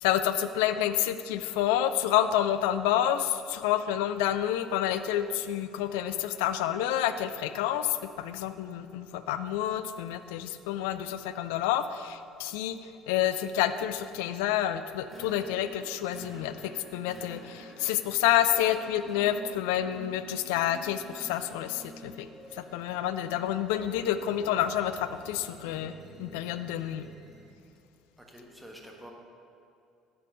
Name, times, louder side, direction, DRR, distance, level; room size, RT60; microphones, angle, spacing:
voice 1, 0.0-12.8 13.1-22.3 22.5-25.9 26.2-27.1, left 11 dB, 65° left, 10 dB, 0.4 m, -29 dB
sound 1, 15.0-27.6, right 1 dB, 35° right, 2.2 m, -50 dB
voice 2, 28.2-29.1, equal, 5° right, 0 dB, 1.5 m, -48 dB
9.8 x 4.2 x 6.2 m, 2.5 s
figure-of-eight pair, 55°, 0 cm